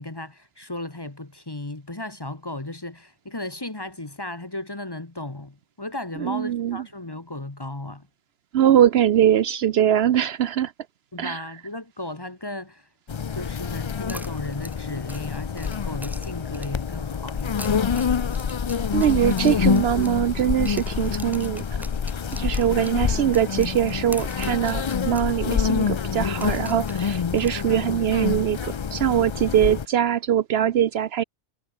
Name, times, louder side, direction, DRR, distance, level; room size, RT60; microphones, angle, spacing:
voice 1, 0.0-8.1 11.1-12.9 13.3-17.8 22.6-22.8, left 2 dB, 20° left, 1.3 m, -35 dB
voice 2, 6.2-6.8 8.5-10.7 11.2-11.4 18.9-21.6 22.4-31.2, right 10 dB, 65° right, 0.8 m, -22 dB
sound 1, 13.1-29.8, left 6 dB, 50° left, 0.3 m, -27 dB
sound 2, 14.1-16.9 17.4-20.4 20.7-25.3 25.6-25.7 26.4-28.0, equal, ahead, 3.1 m, -44 dB
omnidirectional pair, 1.2 m